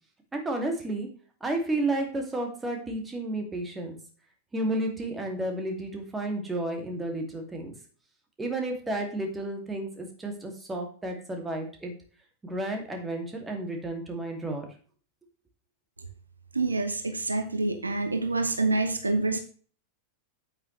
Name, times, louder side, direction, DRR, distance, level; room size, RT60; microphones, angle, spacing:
voice 1, 0.3-1.1 1.4-4.0 4.5-7.7 8.4-11.9 12.4-14.7, right 1 dB, 10° right, 2 dB, 2.6 m, -32 dB
voice 2, 16.5-19.4, right 3 dB, 80° right, 7 dB, 1.1 m, -27 dB
8.8 x 8.7 x 3.3 m, 0.42 s
figure-of-eight pair, 90°, 0 cm